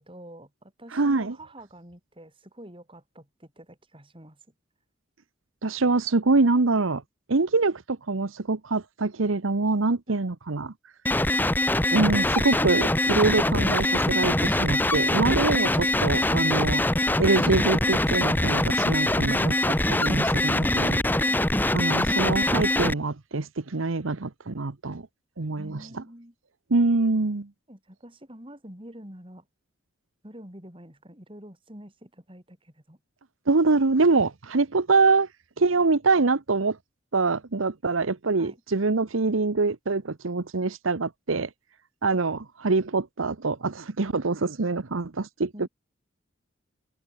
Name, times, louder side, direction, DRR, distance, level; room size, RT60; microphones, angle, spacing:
voice 1, 0.0-4.4 10.1-10.3 21.2-21.5 25.6-26.3 27.7-29.4 30.2-33.0 38.4-38.6 45.5-45.7, right 1 dB, 25° right, 5.1 m, -46 dB
voice 2, 0.9-1.4 5.6-7.0 7.3-10.7 11.9-16.8 17.2-19.6 19.9-21.0 21.7-25.1 25.4-25.8 26.7-27.5 33.5-35.3 35.6-36.8 37.1-41.5 42.0-45.7, right 3 dB, 85° right, 1.0 m, -24 dB
sound 1, 11.1-22.9, left 1 dB, 10° left, 1.0 m, -23 dB
open air
head